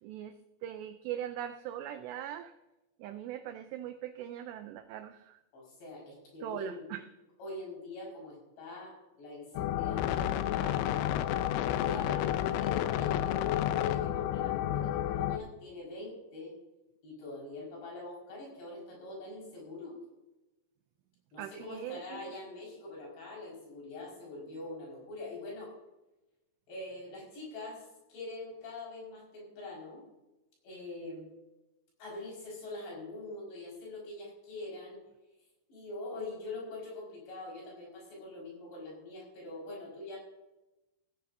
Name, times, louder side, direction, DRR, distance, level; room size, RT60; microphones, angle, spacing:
voice 1, 0.0-2.5 3.0-5.4 6.4-7.0 21.4-22.3, right 11 dB, 85° right, 8 dB, 2.4 m, -41 dB
voice 2, 5.5-6.9 7.4-11.0 11.6-16.6 17.0-20.0 21.3-25.7 26.7-30.0 30.6-31.3 32.0-35.0 35.7-40.2, left 2 dB, 60° left, -2 dB, 7.4 m, -44 dB
sound 1, 9.6-15.4, left 12 dB, 85° left, 3.3 m, -30 dB
18.0 x 14.5 x 2.7 m, 0.99 s
omnidirectional pair, 5.7 m